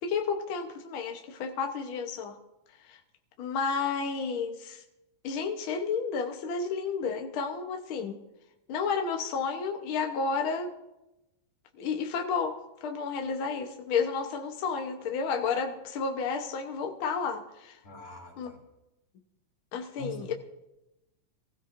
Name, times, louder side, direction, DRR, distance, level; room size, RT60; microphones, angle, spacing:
voice 1, 0.0-2.4 2.9-3.0 3.4-4.8 5.2-8.2 8.7-10.7 11.8-17.8 18.4-18.5 19.7-20.3, left 5 dB, 75° left, 4 dB, 1.2 m, -31 dB
voice 2, 17.8-18.6 20.0-20.3, left 1 dB, 50° left, -2 dB, 4.1 m, -43 dB
24.0 x 16.0 x 2.6 m, 0.94 s
omnidirectional pair, 3.7 m